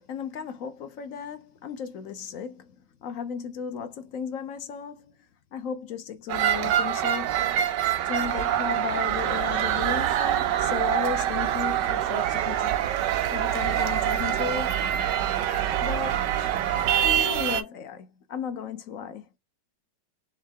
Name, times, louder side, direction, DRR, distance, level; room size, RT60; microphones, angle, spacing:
voice 1, 0.0-2.7 3.0-5.1 5.5-7.6 8.0-12.8 13.3-14.9 15.8-16.2 17.0-19.2, left 7 dB, 60° left, 0.9 m, -35 dB
sound 1, 6.3-17.6, right 11 dB, 80° right, 1.3 m, -25 dB
3.7 x 3.1 x 3.4 m
omnidirectional pair, 1.9 m